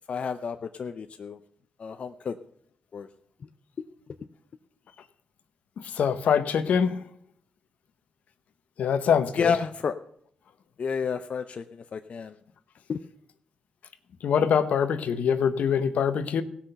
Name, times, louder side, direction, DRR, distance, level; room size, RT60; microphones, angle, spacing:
voice 1, 0.1-1.4 1.8-2.3 2.9-3.1 3.8-3.9 9.4-9.9 10.8-12.4 12.9-13.0, left 6 dB, 55° left, 8 dB, 0.6 m, -30 dB
voice 2, 5.9-7.0 8.8-9.5 14.2-16.4, left 7 dB, 75° left, 11 dB, 0.9 m, -24 dB
16.5 x 5.9 x 6.6 m, 0.66 s
cardioid pair, 65°, 3 cm